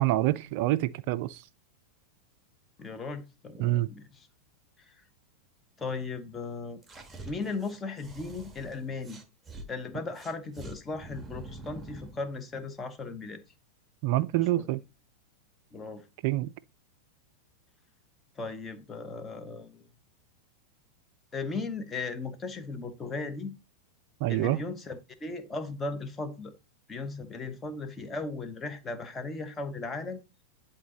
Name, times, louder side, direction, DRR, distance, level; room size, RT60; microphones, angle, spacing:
voice 1, 0.0-1.4 3.6-3.9 14.0-14.8 16.2-16.5 24.2-24.6, right 16 dB, 45° right, 0.3 m, -26 dB
voice 2, 2.8-4.3 4.8-4.9 5.8-6.8 7.2-9.2 9.7-13.4 14.4-14.7 15.7-16.1 18.4-19.9 21.3-23.6 24.3-26.5 26.9-30.2, left 3 dB, 20° left, 1.0 m, -37 dB
sound 1, 6.8-9.7 10.1-12.2, right 2 dB, 10° right, 1.2 m, -45 dB
10.5 x 4.0 x 2.9 m
figure-of-eight pair, 90°, 0 cm